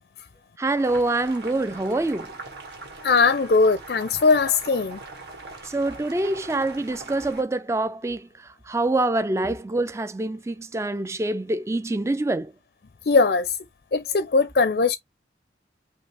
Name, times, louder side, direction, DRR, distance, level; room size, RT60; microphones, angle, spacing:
voice 1, 0.6-2.3 5.6-8.3 8.7-12.5, right 2 dB, 15° right, 0.4 m, -25 dB
Boiling, 0.6-7.4, right 3 dB, 70° right, 2.0 m, -41 dB
voice 2, 3.0-5.0 13.1-13.6 13.9-15.0, left 4 dB, 60° left, 0.4 m, -20 dB
5.1 x 2.7 x 3.4 m
head